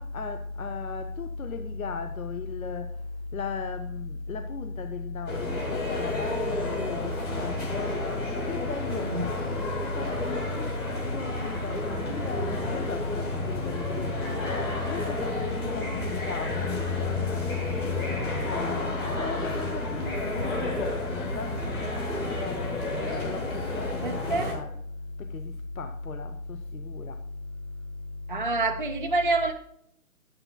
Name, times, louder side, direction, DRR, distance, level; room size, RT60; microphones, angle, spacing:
voice 1, 0.0-2.9 3.3-8.0 8.5-10.7 11.1-14.4 14.9-16.7 19.2-24.7 25.3-27.2, left 4 dB, 65° left, 0.8 m, -35 dB
sound 1, 5.3-24.5, left 2 dB, 15° left, 1.2 m, -31 dB
voice 2, 24.0-24.6 28.3-29.5, right 3 dB, 35° right, 0.4 m, -27 dB
11.0 x 8.8 x 2.2 m
figure-of-eight pair, 150°, 45 cm